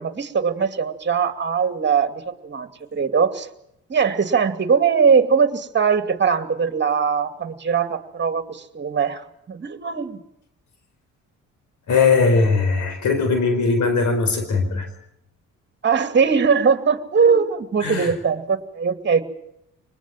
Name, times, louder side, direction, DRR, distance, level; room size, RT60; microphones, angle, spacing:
voice 1, 0.0-3.5 3.9-9.2 9.5-10.2 15.8-19.2, right 6 dB, 35° right, 9 dB, 2.5 m, -20 dB
voice 2, 11.9-14.9 17.8-18.1, left 4 dB, 75° left, 7 dB, 4.4 m, -19 dB
24.0 x 20.0 x 7.5 m, 0.78 s
cardioid pair, 90°, 30 cm